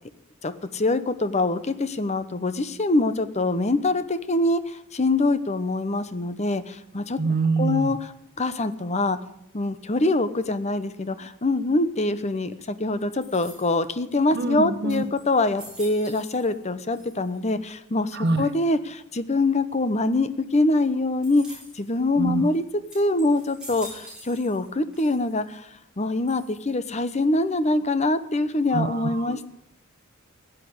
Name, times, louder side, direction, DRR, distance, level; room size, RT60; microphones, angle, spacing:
voice 1, 0.4-7.2 7.6-8.1 8.4-9.2 9.5-22.6 22.9-25.7 26.0-29.5, left 2 dB, 30° left, 12 dB, 0.9 m, -24 dB
voice 2, 7.2-7.9 14.3-15.0 18.1-18.4 22.2-22.4 28.7-29.4, right 3 dB, 50° right, 8 dB, 1.0 m, -25 dB
sound 1, 13.2-13.9 14.5-14.6 14.9-16.6 16.9-17.5 18.2-18.7 21.2-21.9 22.4-22.6 22.9-24.7 24.9-25.6 26.3-26.8, equal, 5° right, 6.8 m, -45 dB
16.0 x 8.4 x 8.3 m, 0.76 s
head